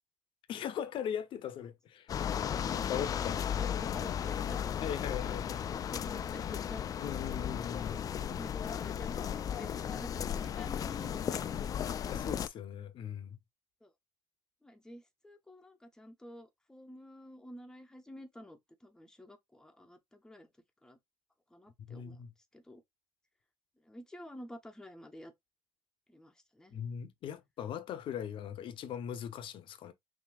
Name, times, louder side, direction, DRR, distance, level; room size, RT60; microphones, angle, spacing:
voice 1, 0.5-2.1 2.5-3.4 4.8-5.7 7.0-8.0 12.1-13.4 21.9-22.3 26.7-29.9, left 8 dB, 60° left, 0.7 m, -39 dB
sound 1, 2.1-12.5, left 9 dB, 40° left, 0.3 m, -35 dB
voice 2, 3.4-4.6 5.7-6.9 7.9-12.2 13.8-13.9 14.6-20.5 20.8-21.0 21.5-22.2 22.5-22.8 23.8-25.3 26.1-26.8, left 1 dB, 5° left, 0.8 m, -50 dB
5.9 x 2.8 x 2.3 m
cardioid pair, 135°, 10 cm